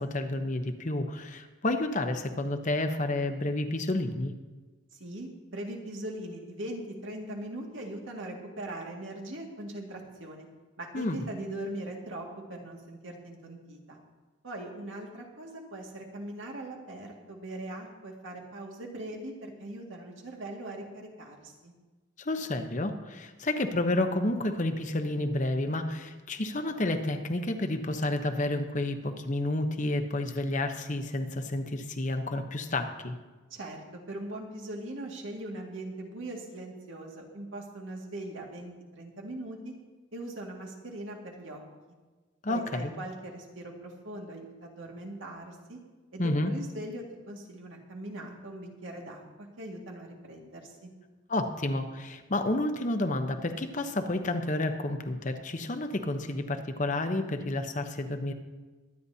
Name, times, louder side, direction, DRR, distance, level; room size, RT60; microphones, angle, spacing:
voice 1, 0.0-4.3 10.9-11.2 22.2-33.1 42.4-42.9 46.2-46.5 51.3-58.3, left 2 dB, 40° left, 6 dB, 0.9 m, -30 dB
voice 2, 4.9-10.5 10.8-14.0 14.4-21.7 33.5-39.7 40.1-41.6 42.5-45.8 46.1-50.9, right 1 dB, 80° right, 0 dB, 2.1 m, -40 dB
23.0 x 9.7 x 2.8 m, 1.3 s
head